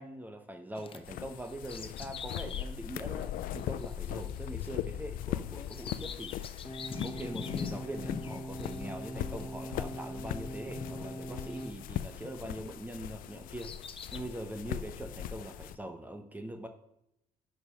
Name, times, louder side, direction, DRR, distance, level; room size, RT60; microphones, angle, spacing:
voice 1, 0.0-6.4 6.9-13.8 14.1-16.7, right 1 dB, 10° right, 6 dB, 0.9 m, -42 dB
Bird vocalization bird call bird song, 0.8-12.8 13.3-14.2, left 6 dB, 40° left, 0.8 m, -45 dB
sound 1, 1.0-15.8, left 12 dB, 75° left, 0.4 m, -40 dB
sound 2, 6.7-11.7, right 1 dB, 5° left, 1.2 m, -42 dB
10.5 x 5.1 x 5.8 m, 0.80 s
cardioid pair, 105°, 14 cm